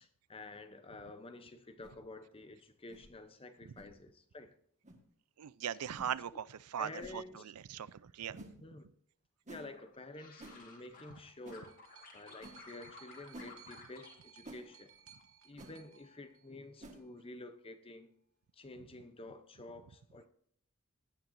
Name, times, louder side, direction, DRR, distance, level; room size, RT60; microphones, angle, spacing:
voice 1, 0.0-4.5 6.8-7.5 8.6-8.9 9.5-11.8 12.1-14.9 15.4-18.1 18.5-20.3, left 2 dB, 25° left, 0.7 m, -50 dB
sound 1, 1.8-2.0 2.9-3.1 3.7-3.9 4.8-5.0 5.9-6.1 7.0-7.2 8.3-8.5 9.5-9.7 10.4-10.6 11.4-11.6 12.4-12.6 13.3-13.5 14.4-14.6 15.6-15.7 16.8-17.0, right 1 dB, 35° right, 1.5 m, -51 dB
voice 2, 5.4-8.5, right 9 dB, 85° right, 0.5 m, -40 dB
sound 2, 9.7-11.2 11.5-14.2 14.4-15.2 15.5-16.0, left 3 dB, 40° left, 2.5 m, -55 dB
sound 3, 11.2-17.0 17.9-18.0, right 7 dB, 65° right, 1.1 m, -61 dB
17.5 x 8.9 x 2.6 m
head